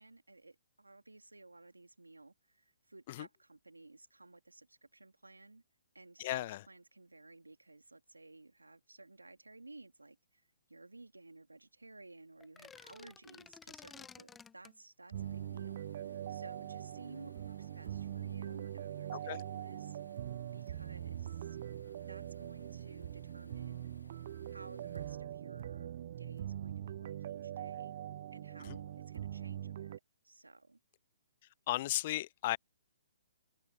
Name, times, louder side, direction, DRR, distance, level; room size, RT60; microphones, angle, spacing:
voice 1, 0.0-5.6 5.9-20.2 20.5-21.6 22.0-23.9 24.4-27.9 28.3-30.8, right 2 dB, 90° right, 3.1 m, -56 dB
voice 2, 6.2-6.6 19.3-19.4 28.7-28.8 31.7-32.6, left 16 dB, 40° left, 0.3 m, -35 dB
sound 1, 12.4-14.8, left 6 dB, 10° left, 0.9 m, -54 dB
sound 2, 15.1-25.1, left 2 dB, 85° left, 1.4 m, -63 dB
sound 3, 15.1-30.0, right 11 dB, 50° right, 0.5 m, -42 dB
open air
figure-of-eight pair, 130°, 0 cm